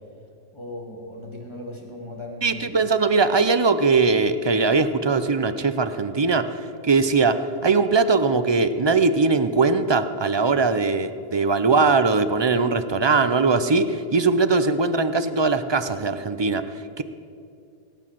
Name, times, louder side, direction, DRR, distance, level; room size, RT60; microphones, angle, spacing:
voice 1, 0.5-2.8, left 1 dB, 20° left, 0 dB, 2.6 m, -37 dB
voice 2, 2.4-6.5 6.8-16.6 17.0-17.1, right 4 dB, 30° right, 10 dB, 0.6 m, -20 dB
18.0 x 8.9 x 7.6 m, 2.4 s
omnidirectional pair, 1.3 m